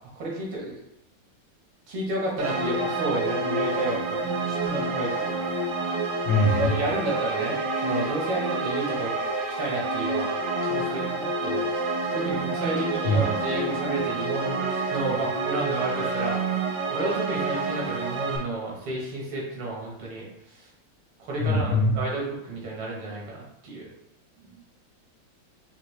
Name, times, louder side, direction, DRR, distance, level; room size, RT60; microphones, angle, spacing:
voice 1, 0.2-0.8 1.9-5.5 6.6-9.2 9.5-10.3 10.6-20.3 20.5-20.7 21.2-23.9 24.4-24.6, right 2 dB, 85° right, -3 dB, 2.2 m, -31 dB
sound 1, 2.4-18.4, right 3 dB, 70° right, 1.1 m, -28 dB
voice 2, 6.2-6.8 13.1-13.2 21.4-22.0, left 1 dB, 85° left, 3 dB, 1.5 m, -22 dB
5.3 x 2.7 x 3.1 m, 0.78 s
omnidirectional pair, 2.4 m